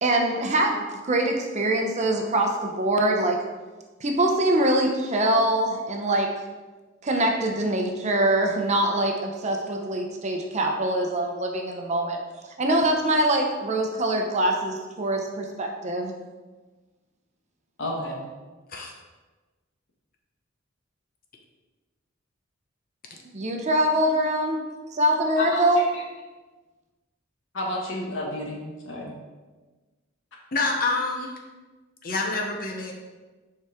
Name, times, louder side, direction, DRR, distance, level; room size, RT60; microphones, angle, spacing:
voice 1, 0.0-3.4 4.0-6.3 7.0-12.2 12.6-16.1 23.3-24.6 24.9-25.8, right 1 dB, 35° right, 2 dB, 0.8 m, -23 dB
voice 2, 17.8-18.2 25.4-26.0 27.5-29.1, left 1 dB, 65° left, -1 dB, 1.4 m, -31 dB
voice 3, 30.5-31.3 32.0-32.9, left 3 dB, 45° left, 1 dB, 0.7 m, -27 dB
7.0 x 4.8 x 3.6 m, 1.3 s
head